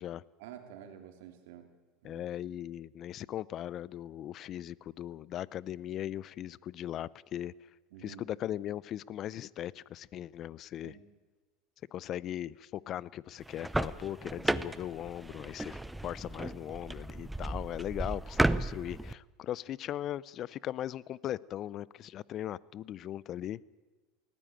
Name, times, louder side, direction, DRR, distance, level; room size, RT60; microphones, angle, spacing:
voice 1, 0.4-1.7 2.0-2.2 7.9-8.2 10.8-11.0, right 9 dB, 75° right, 6 dB, 3.0 m, -49 dB
voice 2, 2.0-7.5 8.0-11.0 11.9-23.6, left 12 dB, 45° left, 22 dB, 0.6 m, -39 dB
sound 1, 13.4-19.1, right 1 dB, 5° right, 0.8 m, -34 dB
18.5 x 16.5 x 9.2 m, 1.2 s
hypercardioid pair, 100°, 0 cm